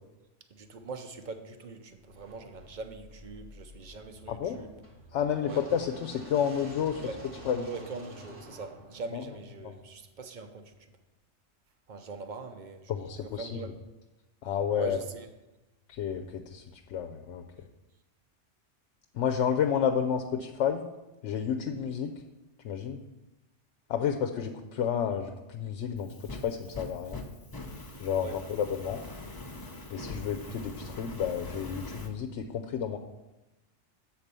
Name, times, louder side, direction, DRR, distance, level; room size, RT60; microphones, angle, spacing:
voice 1, 0.5-4.8 5.4-5.6 7.0-7.3 7.6-10.9 11.9-13.8 14.8-15.3 28.2-28.4, right 4 dB, 45° right, 7 dB, 0.7 m, -42 dB
sound 1, 2.0-10.1, equal, 85° right, 2.4 m, -49 dB
voice 2, 5.1-7.1 7.5-7.6 9.1-9.2 9.6-9.7 12.9-13.6 14.4-15.0 15.9-16.6 16.9-17.4 19.1-20.8 21.2-22.1 22.6-23.0 23.9-27.2 28.0-29.0 29.9-33.0, left 8 dB, 80° left, 5 dB, 0.9 m, -30 dB
Fire, 26.0-32.1, left 2 dB, 25° left, 0.6 m, -42 dB
7.3 x 4.3 x 6.7 m, 1.0 s
omnidirectional pair, 1.2 m